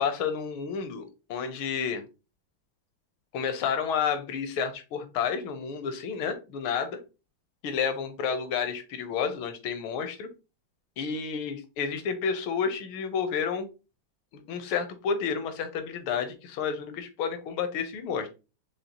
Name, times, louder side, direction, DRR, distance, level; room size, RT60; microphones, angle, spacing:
voice 1, 0.0-2.0 3.3-7.0 7.6-10.3 11.0-13.7 14.3-18.3, left 6 dB, 80° left, 8 dB, 1.7 m, -30 dB
5.6 x 3.1 x 2.8 m, 0.29 s
omnidirectional pair, 2.3 m